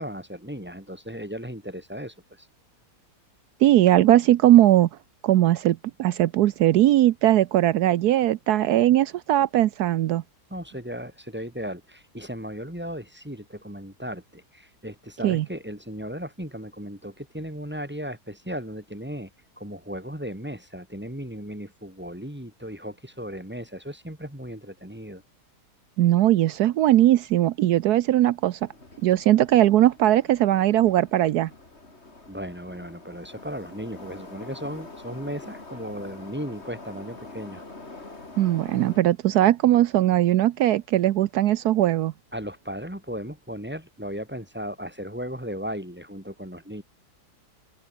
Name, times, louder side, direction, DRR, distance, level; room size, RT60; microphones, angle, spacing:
voice 1, 0.0-2.5 10.5-19.3 19.6-25.2 32.3-37.6 42.3-46.8, equal, 5° right, 2.3 m, -36 dB
voice 2, 3.6-4.9 5.2-10.2 15.2-15.4 26.0-28.7 29.0-31.5 38.4-42.1, right 13 dB, 75° right, 1.2 m, -19 dB
Subway metro underground, 28.7-39.0, left 3 dB, 40° left, 3.8 m, -45 dB
open air
omnidirectional pair, 1.7 m